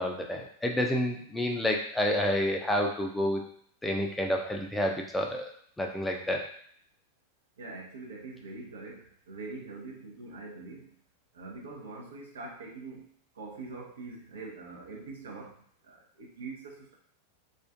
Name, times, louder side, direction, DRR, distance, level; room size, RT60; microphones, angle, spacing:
voice 1, 0.0-3.4 3.8-5.5 5.8-6.4, left 1 dB, 5° left, 1 dB, 0.4 m, -29 dB
voice 2, 7.6-10.9 11.3-13.1 13.3-15.6 15.8-16.9, right 3 dB, 65° right, -2 dB, 0.7 m, -43 dB
2.4 x 2.4 x 2.4 m, 0.62 s
figure-of-eight pair, 90°, 0 cm